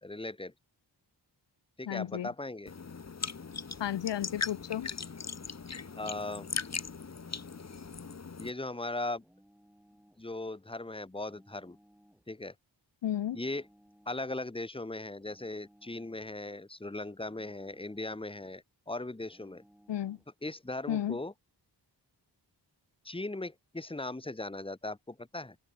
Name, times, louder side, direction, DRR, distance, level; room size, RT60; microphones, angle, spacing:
voice 1, 0.0-0.5 1.8-2.7 5.9-6.5 8.4-9.2 10.2-11.8 12.3-12.5 13.3-13.7 14.0-19.6 20.4-21.3 23.0-25.6, left 2 dB, 15° left, 1.4 m, -38 dB
voice 2, 1.9-2.3 3.8-4.9 13.0-13.4 19.9-20.2 20.9-21.2, left 11 dB, 85° left, 0.7 m, -33 dB
sound 1, 2.7-8.5, left 5 dB, 40° left, 1.2 m, -39 dB
sound 2, 3.2-4.3 5.1-6.3 7.2-8.3 9.2-10.3 11.2-12.3 13.2-14.3 15.2-16.3 17.2-18.3 19.2-20.3, equal, 5° right, 3.2 m, -63 dB
open air
wide cardioid pair, 100°, 42 cm